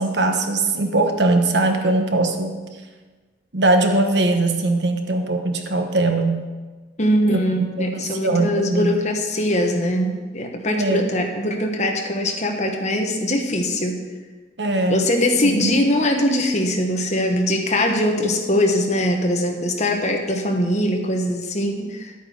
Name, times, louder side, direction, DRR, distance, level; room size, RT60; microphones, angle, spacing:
voice 1, 0.0-2.6 3.5-6.5 7.3-7.4 7.8-8.9 10.7-11.1 14.6-15.1 15.4-15.7, right 2 dB, 75° right, 5 dB, 1.2 m, -20 dB
voice 2, 7.0-14.0 14.9-22.2, left 1 dB, 40° left, 3 dB, 1.3 m, -22 dB
11.0 x 8.6 x 5.0 m, 1.3 s
head